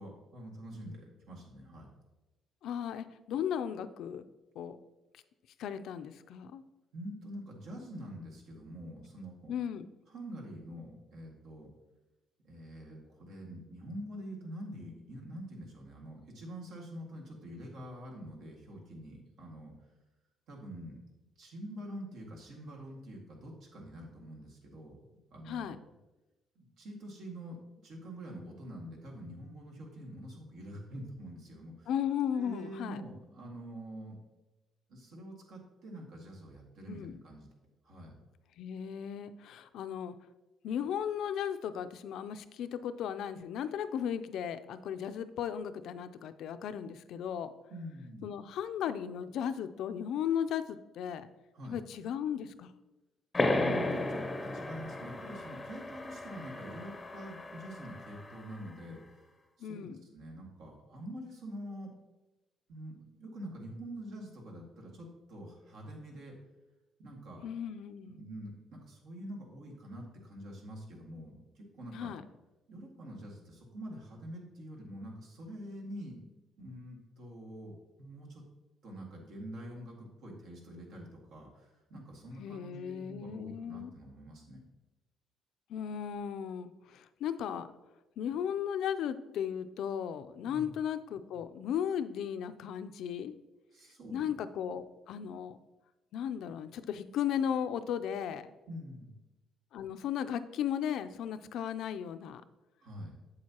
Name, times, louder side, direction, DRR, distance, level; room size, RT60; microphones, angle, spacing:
voice 1, 0.0-1.9 6.9-9.6 10.1-11.7 12.4-19.9 20.5-21.0 21.4-25.0 25.3-25.8 26.6-31.9 32.3-34.2 34.9-37.5 37.8-38.2 47.7-48.3 51.5-51.8 53.4-54.2 54.5-59.3 59.6-59.9 60.1-61.9 62.7-66.4 67.0-67.4 68.0-72.1 72.7-76.2 76.6-78.4 78.8-84.6 90.4-90.7 93.7-94.3 98.7-99.1 102.8-103.2, equal, 75° right, -1 dB, 2.0 m, -46 dB
voice 2, 2.6-4.2 4.6-4.8 5.6-6.6 9.5-9.9 25.5-25.8 31.9-33.0 36.9-37.2 38.6-40.1 40.6-47.5 48.2-51.3 51.7-52.7 59.6-60.0 67.4-68.2 71.9-72.2 82.4-83.9 85.7-87.7 88.2-93.3 94.1-95.6 96.1-98.5 99.7-102.4, left 9 dB, 70° left, 11 dB, 0.4 m, -36 dB
sound 1, 53.3-58.6, left 2 dB, 15° left, 0.6 m, -34 dB
7.9 x 7.5 x 2.9 m, 1.1 s
cardioid pair, 135°, 0 cm